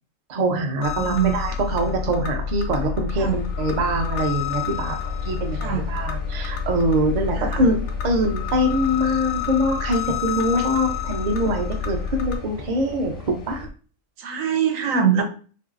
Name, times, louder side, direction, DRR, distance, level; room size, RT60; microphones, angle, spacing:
voice 1, 0.3-13.7, equal, 50° right, 3 dB, 0.5 m, -24 dB
sound 1, 0.8-12.4, left 7 dB, 85° left, 1.0 m, -28 dB
voice 2, 1.0-1.3 3.2-3.4 5.6-5.9 7.4-7.6 14.2-15.2, right 8 dB, 90° right, 4 dB, 1.0 m, -22 dB
sound 2, 3.1-13.7, left 2 dB, 60° left, 0.6 m, -39 dB
2.9 x 2.6 x 2.4 m, 0.39 s
omnidirectional pair, 1.4 m